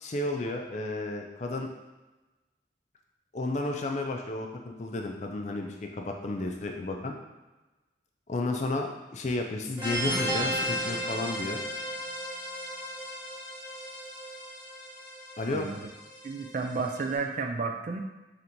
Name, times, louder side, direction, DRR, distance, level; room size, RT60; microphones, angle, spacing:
voice 1, 0.0-1.7 3.3-7.2 8.3-11.6 15.4-15.7, left 2 dB, 40° left, 3 dB, 0.4 m, -32 dB
sound 1, 9.8-17.1, equal, 10° right, 0.9 m, -35 dB
voice 2, 15.5-15.9 16.2-18.0, right 4 dB, 45° right, 4 dB, 0.3 m, -32 dB
3.3 x 2.9 x 3.9 m, 1.1 s
head